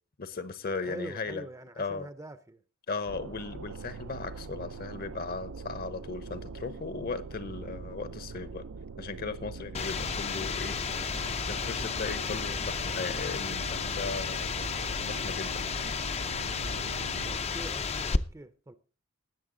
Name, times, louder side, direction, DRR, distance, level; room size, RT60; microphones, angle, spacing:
voice 1, 0.2-1.5 1.8-2.1 2.9-8.6 9.0-11.2 11.5-14.5 15.0-15.7, left 4 dB, 45° left, 0.9 m, -37 dB
voice 2, 0.8-2.6 17.2-18.8, right 1 dB, 15° right, 0.6 m, -44 dB
sound 1, 3.1-17.4, right 4 dB, 80° right, 0.5 m, -43 dB
sound 2, 9.7-18.2, left 5 dB, 30° left, 0.5 m, -32 dB
19.5 x 6.8 x 3.8 m
head